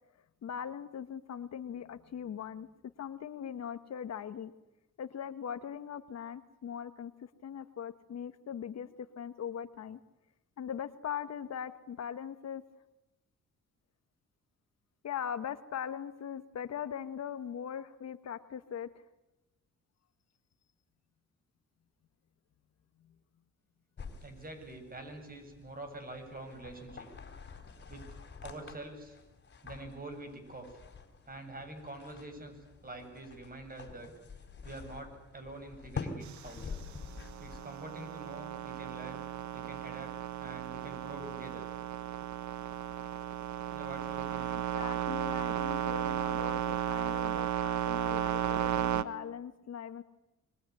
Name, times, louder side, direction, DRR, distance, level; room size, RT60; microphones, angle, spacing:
voice 1, 0.4-2.7 3.0-4.5 5.0-10.0 10.6-12.6 15.0-18.9 44.5-50.0, left 8 dB, 60° left, 11 dB, 1.5 m, -40 dB
sound 1, 24.0-37.6, left 4 dB, 35° left, 4.3 m, -47 dB
voice 2, 24.2-27.1 27.9-28.1 28.4-29.2 29.6-30.8 31.3-34.1 34.4-36.8 37.4-39.2 39.5-40.1 40.4-41.7 43.7-44.6, right 2 dB, 30° right, 7 dB, 7.9 m, -46 dB
sound 2, 36.2-49.0, right 11 dB, 70° right, 1.4 m, -34 dB
25.5 x 22.0 x 9.9 m, 0.95 s
cardioid pair, 90°, 30 cm